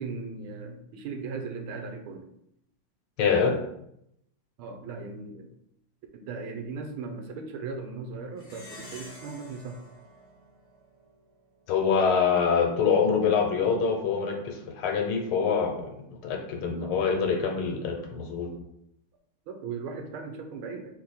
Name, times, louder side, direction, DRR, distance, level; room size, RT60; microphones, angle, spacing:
voice 1, 0.0-2.2 4.6-5.5 6.1-9.7 16.3-16.4 16.8-17.0 19.5-21.0, right 4 dB, 90° right, 5 dB, 1.5 m, -38 dB
voice 2, 3.2-3.6 11.7-18.5, left 6 dB, 85° left, 3 dB, 1.7 m, -25 dB
Plucked string instrument, 8.4-11.2, equal, 45° left, 0.7 m, -48 dB
4.4 x 2.7 x 4.1 m, 0.77 s
omnidirectional pair, 2.3 m